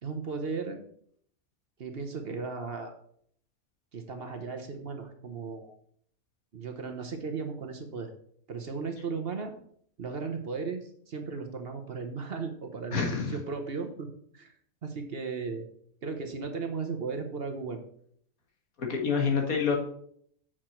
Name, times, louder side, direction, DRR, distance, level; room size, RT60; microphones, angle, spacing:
voice 1, 0.0-0.8 1.8-2.9 3.9-5.7 6.5-8.1 8.5-9.5 10.0-14.1 14.3-14.5 14.8-15.6 16.0-17.8, right 4 dB, 50° right, 5 dB, 1.0 m, -36 dB
voice 2, 12.9-13.4 18.8-19.8, left 5 dB, 80° left, 2 dB, 1.9 m, -27 dB
8.1 x 6.1 x 4.4 m, 0.64 s
omnidirectional pair, 1.5 m